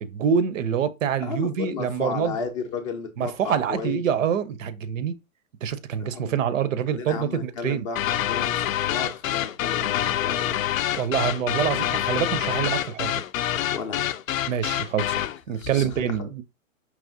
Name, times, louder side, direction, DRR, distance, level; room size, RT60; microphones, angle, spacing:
voice 1, 0.0-2.4 3.2-5.1 5.6-7.9 11.0-13.2 14.5-16.4, right 8 dB, 70° right, 0.6 m, -26 dB
voice 2, 1.2-4.0 6.0-6.3 6.9-10.6 13.7-14.4 15.5-16.2, left 5 dB, 25° left, 0.5 m, -34 dB
sound 1, 8.0-15.4, left 12 dB, 75° left, 0.5 m, -26 dB
4.8 x 2.9 x 2.6 m
hypercardioid pair, 140°, 41 cm